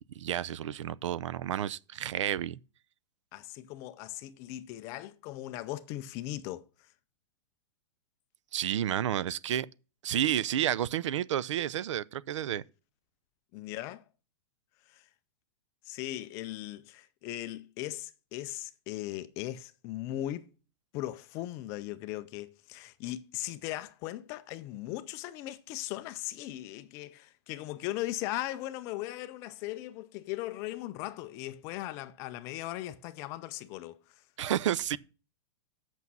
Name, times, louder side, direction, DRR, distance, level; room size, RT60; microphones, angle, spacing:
voice 1, 0.2-2.6 8.5-9.7 10.0-12.6 34.4-35.0, right 11 dB, 80° right, 0.5 m, -30 dB
voice 2, 3.3-6.7 13.5-14.0 14.9-15.0 15.9-20.5 20.9-34.0, left 15 dB, 20° left, 0.4 m, -38 dB
8.3 x 6.2 x 5.4 m
supercardioid pair, 175°, 15 cm